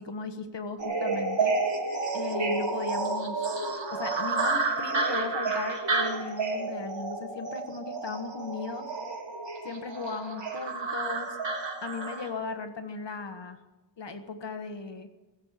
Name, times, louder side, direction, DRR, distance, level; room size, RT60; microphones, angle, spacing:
voice 1, 0.0-1.6 2.1-3.5 3.9-8.9 9.6-11.4 11.8-13.6 14.0-15.1, left 4 dB, 75° left, 7 dB, 1.5 m, -37 dB
sound 1, 0.8-12.3, right 3 dB, 75° right, 3.4 m, -30 dB
21.5 x 7.4 x 8.2 m, 1.2 s
wide cardioid pair, 95°, 44 cm